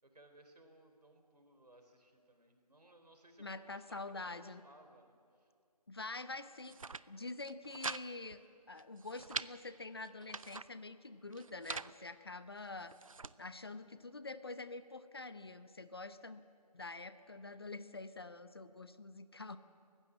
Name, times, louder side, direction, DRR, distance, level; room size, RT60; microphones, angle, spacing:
voice 1, 0.0-5.5, right 1 dB, 75° right, 5 dB, 3.9 m, -62 dB
voice 2, 3.4-4.6 5.9-6.8 7.1-8.4 8.7-12.9 13.4-16.4 16.7-19.6, left 3 dB, 40° left, 12 dB, 0.7 m, -46 dB
sound 1, 6.5-7.0 7.4-8.0 8.3-8.4 8.8-9.5 10.0-10.7 11.3-11.9 12.6-13.3, right 4 dB, 55° right, 0.6 m, -43 dB
28.0 x 15.5 x 7.4 m, 2.3 s
figure-of-eight pair, 165°, 20 cm